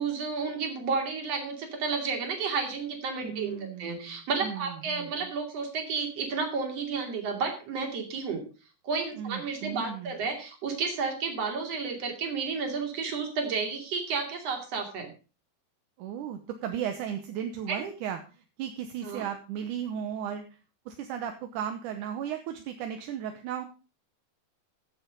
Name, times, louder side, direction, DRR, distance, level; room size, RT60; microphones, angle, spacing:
voice 1, 0.0-8.4 8.8-15.1 17.7-17.9 19.0-19.2, right 5 dB, 45° right, 4 dB, 3.5 m, -31 dB
voice 2, 3.2-5.3 9.2-10.2 16.0-20.4 20.9-23.7, right 9 dB, 70° right, 7 dB, 2.2 m, -35 dB
15.0 x 7.3 x 5.2 m, 0.34 s
omnidirectional pair, 4.2 m